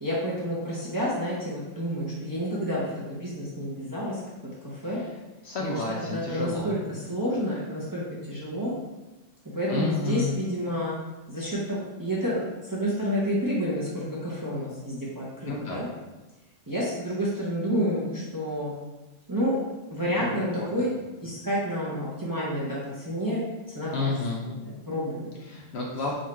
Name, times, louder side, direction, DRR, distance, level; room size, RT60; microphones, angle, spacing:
voice 1, 0.0-4.2 4.6-5.0 5.6-5.7 6.1-8.7 9.4-11.0 11.3-15.9 16.7-18.7 19.3-19.6 19.9-20.9 21.2-24.1 24.4-25.3, equal, 20° right, -7 dB, 0.6 m, -29 dB
voice 2, 5.4-6.7 9.7-10.4 15.5-15.8 20.1-20.7 23.9-24.4 25.5-26.1, left 3 dB, 65° left, -2 dB, 0.7 m, -30 dB
3.9 x 2.4 x 4.3 m, 1.1 s
omnidirectional pair, 1.4 m